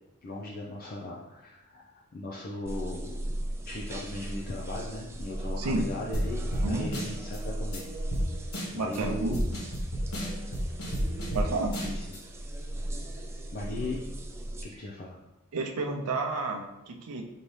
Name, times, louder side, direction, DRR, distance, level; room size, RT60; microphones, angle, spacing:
voice 1, 0.2-3.2 3.6-7.9 8.2-8.4 8.7-9.4 11.8-12.2 13.5-14.0 14.6-15.2, left 2 dB, 40° left, -4 dB, 0.5 m, -38 dB
sound 1, 2.7-14.7, right 1 dB, 10° right, 0.3 m, -37 dB
sound 2, 6.1-6.3 6.5-6.7 6.9-7.4 7.7-7.8 8.1-8.2 8.5-9.0 9.3-11.4 11.7-12.2, equal, 80° left, 1.1 m, -31 dB
voice 2, 8.7-9.4 11.3-11.7 15.5-17.2, right 3 dB, 85° right, 3 dB, 0.6 m, -31 dB
5.2 x 2.8 x 3.2 m, 0.96 s
head